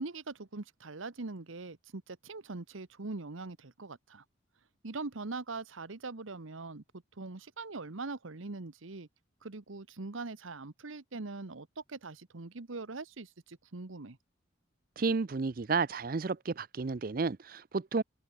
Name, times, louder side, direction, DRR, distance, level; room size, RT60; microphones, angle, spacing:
voice 1, 0.0-4.2 4.8-6.8 7.2-9.1 9.4-14.2, right 3 dB, 85° right, 1.2 m, -42 dB
voice 2, 15.0-18.0, right 4 dB, 45° right, 0.5 m, -31 dB
open air
head